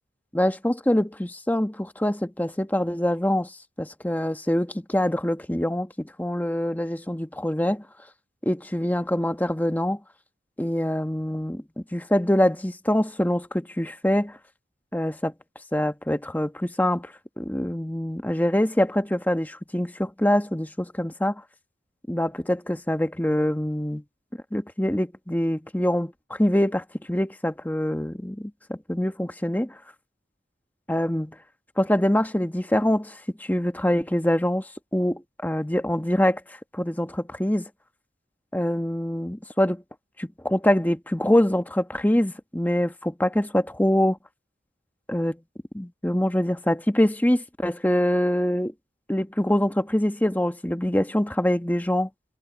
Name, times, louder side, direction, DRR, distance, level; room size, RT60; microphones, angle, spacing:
voice 1, 0.3-3.5 3.8-7.8 8.4-10.0 10.6-11.6 11.9-14.4 14.9-15.3 15.7-21.4 22.1-24.0 24.5-29.8 30.9-31.3 31.8-37.7 38.5-39.8 40.2-44.2 45.1-45.4 45.7-48.7 49.1-52.1, left 1 dB, 10° left, 1.3 m, -24 dB
head